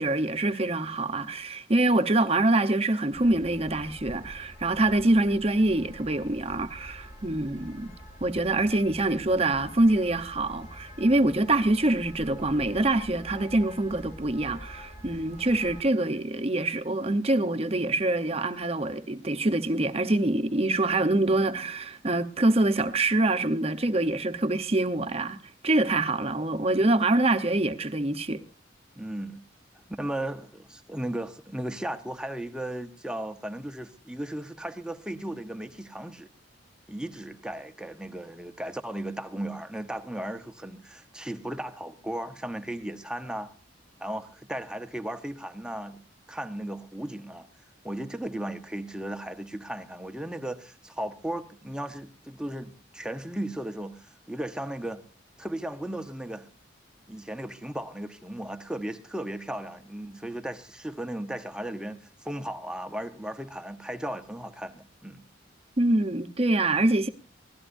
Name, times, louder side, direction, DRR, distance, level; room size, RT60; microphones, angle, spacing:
voice 1, 0.0-7.9 8.2-28.4 65.8-67.1, right 2 dB, 30° right, 0.9 m, -25 dB
sound 1, 3.1-15.8, equal, 40° left, 5.2 m, -46 dB
voice 2, 29.0-29.4 30.0-36.3 36.9-43.5 44.0-46.0 46.3-47.5 47.8-55.0 55.4-56.5 57.1-65.2, right 1 dB, 5° right, 0.9 m, -36 dB
24.0 x 16.5 x 2.6 m
head